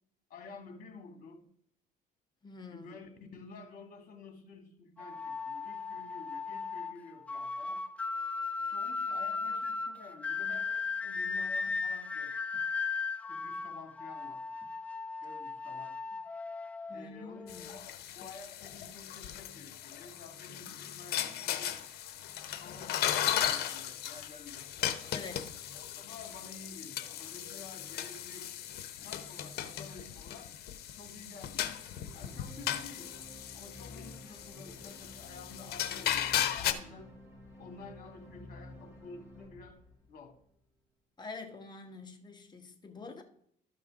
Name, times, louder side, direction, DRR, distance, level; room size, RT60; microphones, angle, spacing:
voice 1, 0.3-1.5 2.7-7.8 8.6-12.3 13.3-14.4 15.2-16.0 16.9-21.8 22.6-25.0 26.0-28.5 28.9-30.5 30.9-31.7 32.1-33.1 33.5-37.1 37.6-39.8 40.1-40.3, left 4 dB, 55° left, 2.0 m, -51 dB
voice 2, 2.4-2.9 16.9-17.7 25.1-25.5 41.2-43.2, left 4 dB, 25° left, 1.3 m, -46 dB
sound 1, 5.0-17.8, left 4 dB, 10° left, 0.4 m, -37 dB
sound 2, 17.5-36.7, left 11 dB, 70° left, 0.9 m, -37 dB
sound 3, 32.1-40.5, left 1 dB, 15° right, 2.7 m, -52 dB
13.0 x 5.4 x 3.7 m
cardioid pair, 110°, 17 cm